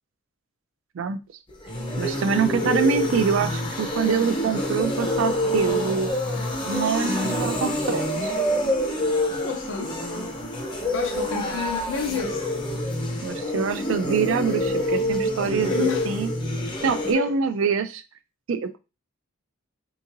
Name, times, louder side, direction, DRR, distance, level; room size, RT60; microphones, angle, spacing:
sound 1, 1.5-17.1, left 1 dB, 20° left, 0.6 m, -27 dB
voice 1, 2.0-6.1 6.7-8.3 9.1-9.4 13.2-16.3 16.8-18.0 18.5-18.8, right 6 dB, 70° right, 0.4 m, -25 dB
voice 2, 9.4-10.0 10.9-12.5 15.7-16.1 17.1-17.4, left 5 dB, 60° left, 0.6 m, -30 dB
3.6 x 2.9 x 2.5 m
head